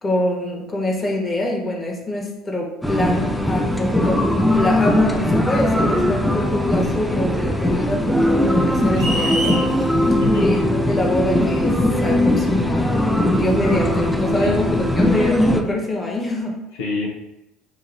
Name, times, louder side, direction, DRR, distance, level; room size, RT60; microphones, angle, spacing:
voice 1, 0.0-4.2 4.5-10.6 10.9-16.6, left 1 dB, 25° left, -1 dB, 1.2 m, -25 dB
sound 1, 2.8-15.6, left 1 dB, ahead, 0.5 m, -19 dB
sound 2, 8.9-9.7, right 1 dB, 75° right, 1.1 m, -25 dB
voice 2, 10.1-10.6 13.3-13.4 14.4-14.9 16.7-17.1, left 4 dB, 80° left, -3 dB, 0.7 m, -27 dB
6.2 x 2.6 x 2.6 m, 0.93 s
hypercardioid pair, 70°, 0 cm